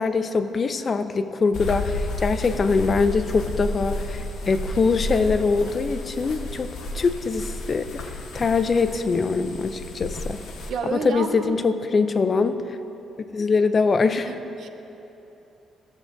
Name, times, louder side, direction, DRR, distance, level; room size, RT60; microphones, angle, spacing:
voice 1, 0.0-10.4 10.8-12.8 13.3-14.3, left 4 dB, 30° left, 10 dB, 0.3 m, -23 dB
sound 1, 1.5-10.7, left 2 dB, 85° left, 0.9 m, -32 dB
voice 2, 10.7-11.6 14.2-14.7, right 6 dB, 60° right, 8 dB, 0.5 m, -30 dB
15.0 x 7.1 x 2.5 m, 2.9 s
cardioid pair, 155°, 0 cm